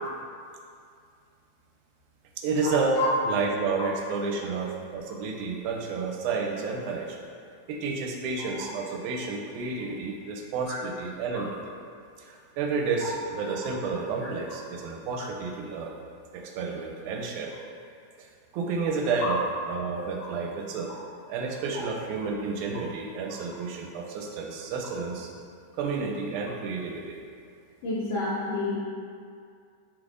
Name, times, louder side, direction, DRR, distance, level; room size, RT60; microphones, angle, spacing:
voice 1, 2.4-3.0 3.2-7.3 7.7-11.7 12.2-15.9 16.3-17.5 18.2-18.3 18.5-19.4 19.7-20.9 21.3-25.3 25.7-27.2, right 4 dB, 90° right, 1 dB, 2.0 m, -31 dB
voice 2, 27.8-28.8, left 3 dB, 75° left, -8 dB, 1.4 m, -29 dB
5.2 x 3.3 x 2.5 m, 2.3 s
omnidirectional pair, 3.4 m